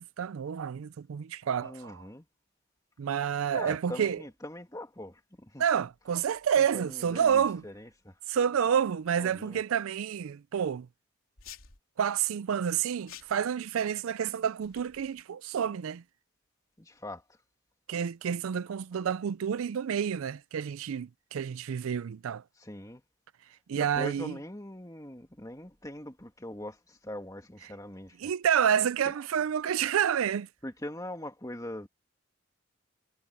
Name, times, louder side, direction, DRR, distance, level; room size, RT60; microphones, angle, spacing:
voice 1, 0.0-2.0 3.0-4.2 5.6-7.6 8.3-10.9 12.0-16.0 17.9-22.4 23.7-24.3 28.2-30.5, right 8 dB, 80° right, 0.4 m, -29 dB
voice 2, 1.6-2.3 3.5-5.6 6.6-8.2 9.1-9.6 16.8-17.3 22.6-23.0 23.7-28.3 29.1-29.2 30.6-31.9, left 1 dB, 15° left, 2.4 m, -42 dB
sound 1, 11.4-11.8 13.1-13.5 14.6-15.2, left 9 dB, 80° left, 3.2 m, -50 dB
head